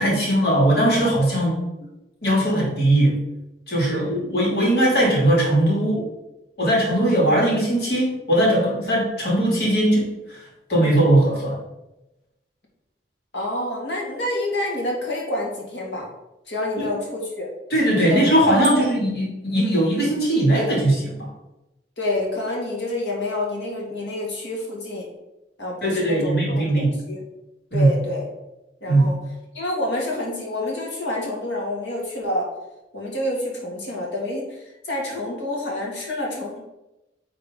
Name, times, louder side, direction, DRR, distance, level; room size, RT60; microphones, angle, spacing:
voice 1, 0.0-1.6 2.2-3.2 3.7-6.0 6.6-11.6 16.8-16.9 17.7-21.3 25.8-26.9 27.7-28.0 28.9-29.1, right 1 dB, 60° left, -4 dB, 2.5 m, -19 dB
voice 2, 13.3-16.1 16.5-17.5 17.9-18.2 18.7-18.8 22.0-25.1 25.6-27.2 27.7-28.2 28.8-29.2 29.5-32.5 32.9-36.6, left 1 dB, 85° left, -2 dB, 2.1 m, -28 dB
Bicycle bell, 18.6-19.3, right 3 dB, 25° right, 1.1 m, -32 dB
8.9 x 3.7 x 3.7 m, 0.95 s
head